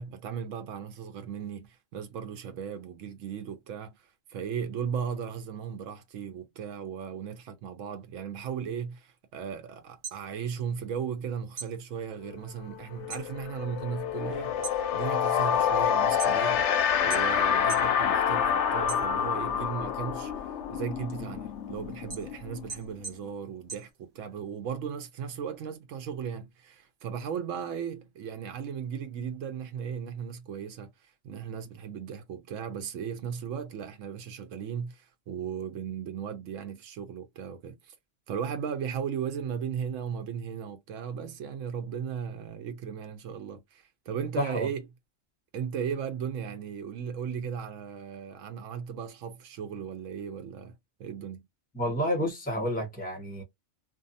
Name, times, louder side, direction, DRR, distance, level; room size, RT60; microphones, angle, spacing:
voice 1, 0.0-20.3 20.7-37.9 38.3-44.8 45.5-50.7 51.0-51.5, right 7 dB, 80° right, 1.0 m, -36 dB
sound 1, 9.8-11.2 11.5-13.3 13.7-14.1 14.5-16.7 17.1-18.0 18.3-19.5 20.0-24.5, right 4 dB, 65° right, 1.3 m, -42 dB
sound 2, 12.2-12.4 12.7-23.3, left 8 dB, 70° left, 0.8 m, -28 dB
voice 2, 44.4-44.7 51.7-53.4, equal, 5° left, 1.1 m, -30 dB
2.6 x 2.2 x 2.6 m
omnidirectional pair, 1.3 m